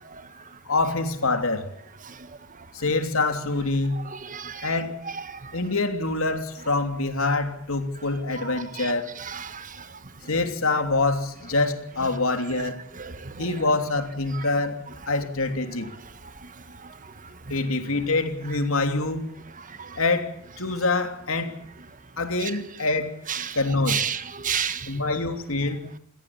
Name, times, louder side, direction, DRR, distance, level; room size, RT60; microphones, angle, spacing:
voice 1, 0.6-1.7 2.7-4.0 4.6-5.0 5.5-9.1 10.3-12.8 13.4-15.9 17.5-19.3 20.0-21.6 22.2-23.2 23.5-24.1 24.9-25.9, left 3 dB, 80° left, 3.2 m, -25 dB
voice 2, 4.3-4.7 8.8-8.9 9.3-9.5 13.0-13.1 23.3-23.5 23.9-24.9, right 8 dB, 40° right, 1.4 m, -29 dB
28.0 x 17.5 x 8.8 m
head